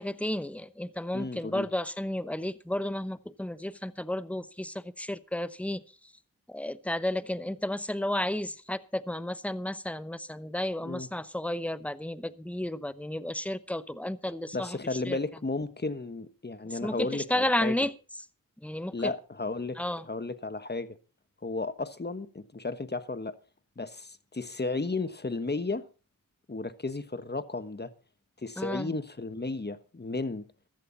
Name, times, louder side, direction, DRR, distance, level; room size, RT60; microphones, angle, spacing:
voice 1, 0.0-5.8 6.5-14.8 15.1-15.2 16.7-17.9 18.6-19.1 19.8-20.1 28.6-28.9, left 1 dB, 5° left, 0.9 m, -32 dB
voice 2, 1.1-1.7 10.8-11.1 14.5-17.7 18.9-21.0 21.4-23.3 23.8-25.8 26.5-27.9 28.4-30.4, left 3 dB, 30° left, 1.4 m, -34 dB
14.5 x 13.5 x 4.1 m
cardioid pair, 60°, 34 cm